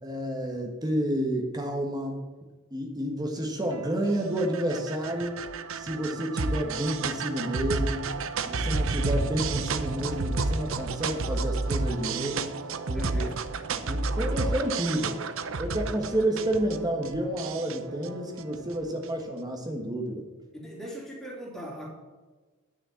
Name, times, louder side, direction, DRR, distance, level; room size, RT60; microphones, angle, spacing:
voice 1, 0.0-2.2 2.7-5.4 5.7-8.1 8.4-12.5 12.9-13.3 13.7-15.2 15.6-20.2, right 1 dB, 20° right, 2 dB, 1.4 m, -30 dB
sound 1, 3.7-19.2, right 3 dB, 65° right, 0.7 m, -31 dB
voice 2, 12.9-13.4 20.5-21.9, equal, ahead, -2 dB, 3.0 m, -40 dB
10.5 x 6.5 x 7.1 m, 1.3 s
head